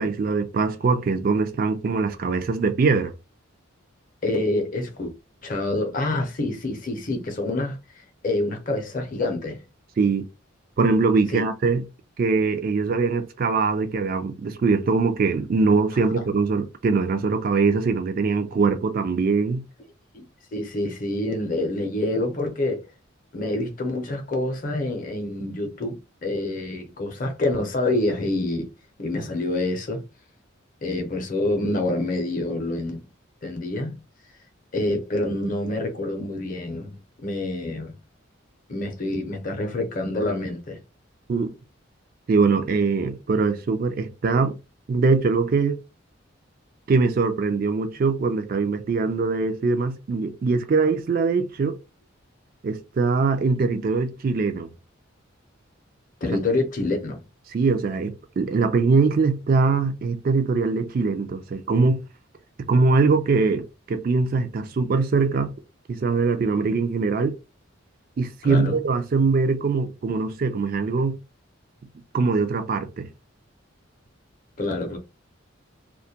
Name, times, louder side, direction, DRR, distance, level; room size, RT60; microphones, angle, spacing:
voice 1, 0.0-3.1 10.0-10.3 10.8-11.8 12.2-19.6 41.3-41.5 42.3-44.6 44.9-45.8 46.9-51.8 52.6-54.7 57.5-62.0 62.7-65.5 65.9-67.3 68.2-71.2 72.1-73.1, right 4 dB, 45° right, 0.3 m, -22 dB
voice 2, 4.2-5.1 5.4-7.8 8.2-9.6 11.3-11.4 20.1-20.3 20.5-22.8 23.3-28.7 29.0-30.0 30.8-33.1 33.4-34.0 34.7-37.9 38.7-40.8 56.2-57.2 68.4-68.8 74.6-75.0, left 2 dB, 40° left, 0.6 m, -27 dB
2.2 x 2.1 x 2.7 m
head